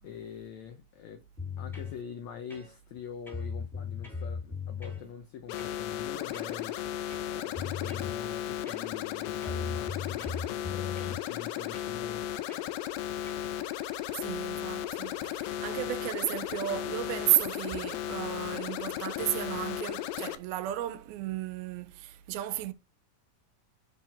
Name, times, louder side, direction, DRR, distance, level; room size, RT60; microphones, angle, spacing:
voice 1, 0.0-1.2 1.6-6.8 7.3-12.3, left 8 dB, 75° left, 1.7 m, -44 dB
sound 1, 1.4-2.0 2.5-3.0 3.3-5.0 5.6-5.8 6.3-6.6 7.1-8.2 8.7-9.1 9.4-11.2 11.7-12.0 12.5-12.7 13.3-13.5, left 5 dB, ahead, 1.8 m, -38 dB
sound 2, 5.5-20.4, left 12 dB, 90° left, 2.5 m, -35 dB
voice 2, 14.1-22.7, right 14 dB, 85° right, 2.6 m, -33 dB
7.2 x 5.0 x 4.3 m
omnidirectional pair, 4.2 m